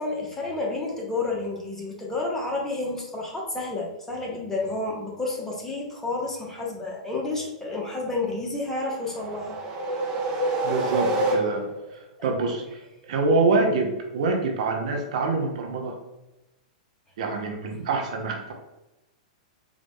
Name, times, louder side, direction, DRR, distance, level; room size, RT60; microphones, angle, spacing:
voice 1, 0.0-9.6 12.2-12.3, left 2 dB, 10° left, -2 dB, 1.1 m, -30 dB
sound 1, 8.8-11.9, right 2 dB, 30° right, 0.9 m, -27 dB
voice 2, 10.6-11.7 12.2-12.8 13.1-15.9 17.2-18.5, right 3 dB, 65° right, 3 dB, 0.8 m, -25 dB
4.0 x 2.4 x 3.7 m, 0.98 s
hypercardioid pair, 120°, 4 cm